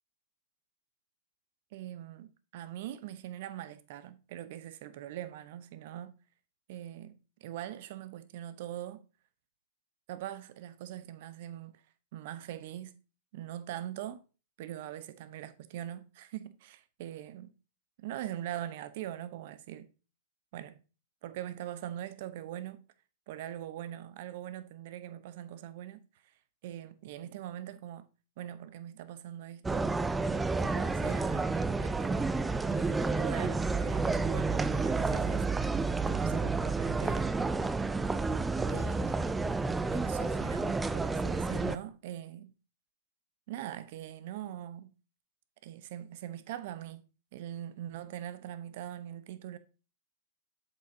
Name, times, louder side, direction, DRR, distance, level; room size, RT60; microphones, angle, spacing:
voice 1, 1.7-6.1 6.7-9.1 10.1-11.8 12.1-13.0 13.3-14.2 14.6-17.5 18.0-19.9 20.5-20.8 21.2-22.9 23.3-26.3 26.6-28.1 28.4-29.9 30.3-32.4 32.7-35.5 36.0-37.5 38.7-39.2 39.9-42.5 43.5-44.9 45.6-47.0 47.3-49.6, right 12 dB, 55° right, 0.8 m, -42 dB
sound 1, 29.6-41.8, right 3 dB, 10° right, 0.4 m, -30 dB
7.8 x 6.8 x 2.7 m
figure-of-eight pair, 100°, 0 cm